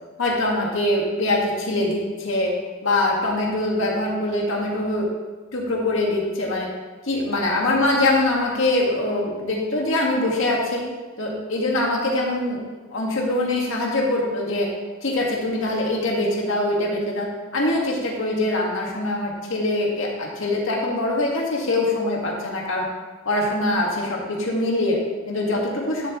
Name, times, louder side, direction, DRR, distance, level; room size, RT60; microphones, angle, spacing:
voice 1, 0.2-2.6 2.8-5.1 5.5-6.7 7.0-10.8 11.2-12.6 12.9-14.7 15.0-22.9 23.3-26.1, left 2 dB, 70° left, -1 dB, 1.9 m, -23 dB
11.5 x 7.4 x 3.2 m, 1.3 s
head